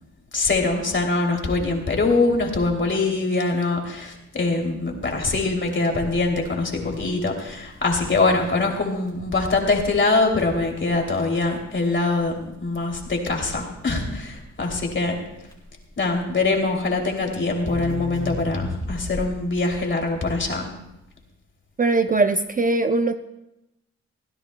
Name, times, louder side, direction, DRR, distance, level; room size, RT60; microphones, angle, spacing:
voice 1, 0.3-15.2 16.0-20.7, left 3 dB, 40° left, 1 dB, 2.8 m, -23 dB
Crackle, 6.0-19.5, left 1 dB, 15° left, 3.4 m, -37 dB
voice 2, 21.8-23.2, right 3 dB, 30° right, 8 dB, 0.5 m, -20 dB
25.0 x 16.0 x 2.2 m, 0.89 s
wide cardioid pair, 135°, 29 cm